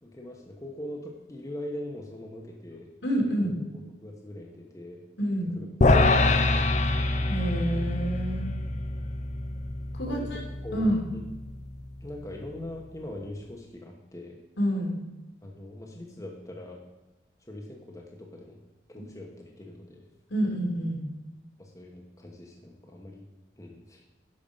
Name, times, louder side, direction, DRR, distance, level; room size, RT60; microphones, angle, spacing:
voice 1, 0.0-2.9 3.4-5.0 5.5-5.7 6.0-6.9 10.1-11.2 12.0-14.4 15.4-16.9 17.4-18.6 18.9-20.1 21.6-23.2 23.6-24.0, left 1 dB, 20° left, 0 dB, 1.1 m, -42 dB
voice 2, 3.0-3.5 5.2-5.5 7.3-8.5 9.9-10.4 10.7-11.0 14.6-15.0 20.3-21.1, equal, 85° left, -1 dB, 3.2 m, -28 dB
sound 1, 5.8-12.2, left 2 dB, 40° left, 0.6 m, -26 dB
10.5 x 5.8 x 5.5 m, 1.1 s
head